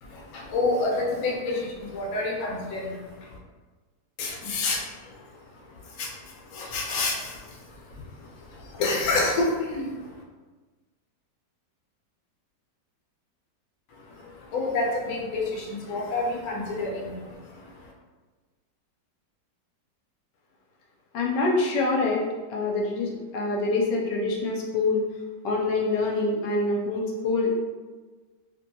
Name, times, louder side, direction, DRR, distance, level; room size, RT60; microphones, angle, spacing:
voice 1, 0.0-3.4 4.2-10.2 13.9-17.9, left 3 dB, 70° left, -2 dB, 1.1 m, -30 dB
voice 2, 21.1-22.2 22.5-25.0 25.4-27.6, left 3 dB, 85° left, -1 dB, 1.2 m, -25 dB
3.0 x 2.6 x 2.7 m, 1.3 s
omnidirectional pair, 1.8 m